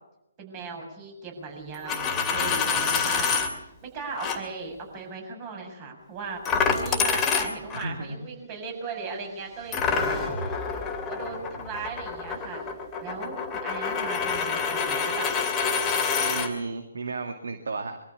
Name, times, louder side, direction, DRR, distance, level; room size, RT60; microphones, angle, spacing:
voice 1, 0.4-10.2 11.1-12.7 13.0-15.4, right 4 dB, 30° right, 2 dB, 7.1 m, -37 dB
Coin (dropping), 1.7-3.5 4.2-4.4 6.5-7.9 9.7-16.5, left 6 dB, 15° left, 2.9 m, -27 dB
voice 2, 7.8-8.2 16.2-18.0, right 3 dB, 70° right, 6 dB, 2.1 m, -33 dB
sound 1, 8.9-13.2, right 1 dB, 5° right, 3.4 m, -42 dB
24.0 x 14.0 x 8.4 m, 0.89 s
figure-of-eight pair, 140°, 0 cm